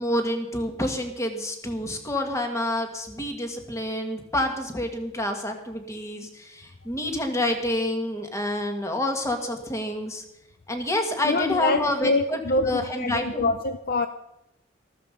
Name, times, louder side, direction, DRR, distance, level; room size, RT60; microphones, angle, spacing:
voice 1, 0.0-10.2 10.7-12.4 12.7-13.5, left 1 dB, 15° left, 4 dB, 1.8 m, -28 dB
voice 2, 11.2-14.1, left 2 dB, 50° left, 9 dB, 0.6 m, -25 dB
14.0 x 13.5 x 5.2 m, 0.83 s
head